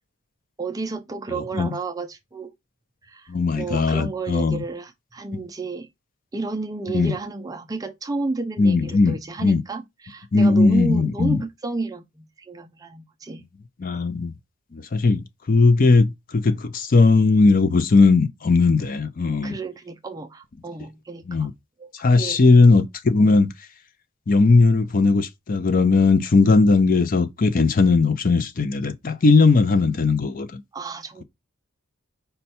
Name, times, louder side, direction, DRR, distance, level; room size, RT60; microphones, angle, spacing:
voice 1, 0.6-2.5 3.0-5.9 6.3-13.5 19.4-21.5 21.8-21.9 22.2-22.4 23.2-23.3 30.7-31.2, right 3 dB, 15° right, 0.4 m, -31 dB
voice 2, 3.3-4.6 6.9-7.1 8.6-9.6 10.3-11.4 13.8-14.3 14.7-19.5 21.3-21.5 22.0-23.5 24.3-30.6, left 3 dB, 40° left, 0.5 m, -18 dB
5.3 x 2.3 x 4.2 m
head